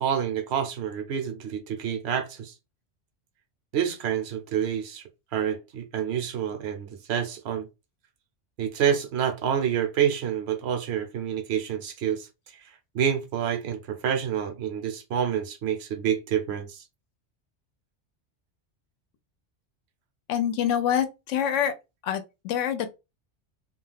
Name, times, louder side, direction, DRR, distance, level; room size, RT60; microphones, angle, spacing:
voice 1, 0.0-2.5 3.7-5.0 5.3-7.7 8.6-12.3 12.5-16.8, right 8 dB, 65° right, 0.8 m, -28 dB
voice 2, 20.3-21.7 22.0-22.9, left 9 dB, 90° left, 0.9 m, -26 dB
2.4 x 2.3 x 3.2 m
omnidirectional pair, 1.2 m